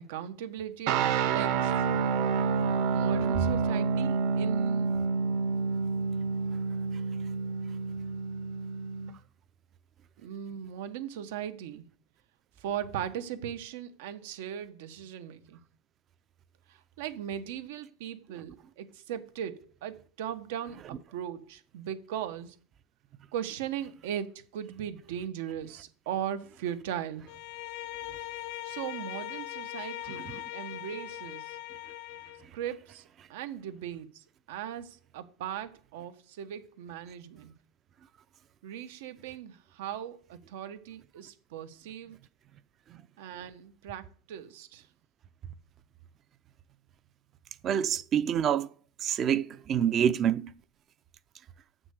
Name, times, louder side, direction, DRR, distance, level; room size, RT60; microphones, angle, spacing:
voice 1, 0.0-1.9 2.9-5.0 10.2-11.9 12.6-15.6 16.7-22.6 23.3-27.2 28.6-31.6 32.5-33.0 33.3-37.5 38.6-42.2 43.2-44.9, right 10 dB, 85° right, 1.3 m, -38 dB
sound 1, 0.9-9.1, right 5 dB, 55° right, 1.1 m, -28 dB
Bowed string instrument, 27.3-32.5, left 15 dB, 55° left, 0.6 m, -40 dB
voice 2, 47.6-48.7 49.0-50.5, right 9 dB, 30° right, 0.4 m, -26 dB
7.8 x 6.1 x 8.0 m
cardioid pair, 175°, 0 cm